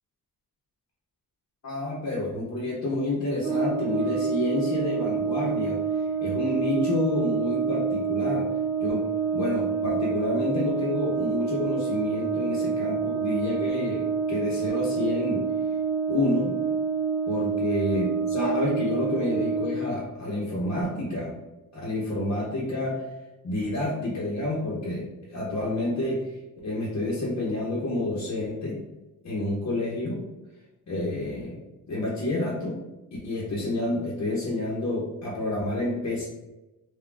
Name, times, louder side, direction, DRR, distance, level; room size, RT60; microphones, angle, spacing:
voice 1, 1.6-8.5 8.8-9.1 9.3-15.8 16.1-16.6 17.3-21.4 21.7-28.8 29.2-30.2 30.5-31.6 31.9-32.8 33.2-36.3, left 2 dB, 50° left, -6 dB, 0.8 m, -29 dB
Brass instrument, 3.4-19.8, right 6 dB, 75° right, 0.6 m, -27 dB
3.6 x 2.2 x 2.4 m, 1.0 s
cardioid pair, 95°, 34 cm